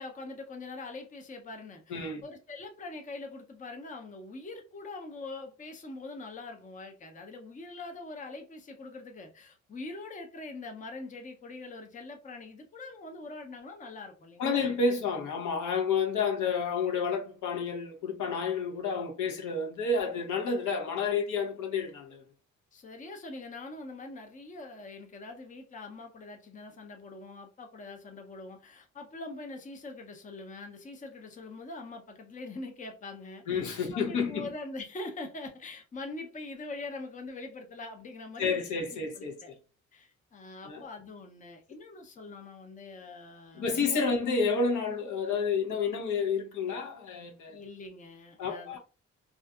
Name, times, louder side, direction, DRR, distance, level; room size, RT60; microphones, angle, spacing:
voice 1, 0.0-14.7 22.7-39.5 39.9-44.2 47.5-48.8, left 3 dB, 25° left, 0.6 m, -43 dB
voice 2, 1.9-2.2 14.4-22.2 33.5-34.5 38.4-39.3 40.6-40.9 43.6-47.6 48.4-48.8, left 5 dB, 75° left, 0.8 m, -30 dB
2.5 x 2.4 x 2.3 m
cardioid pair, 90°, 30 cm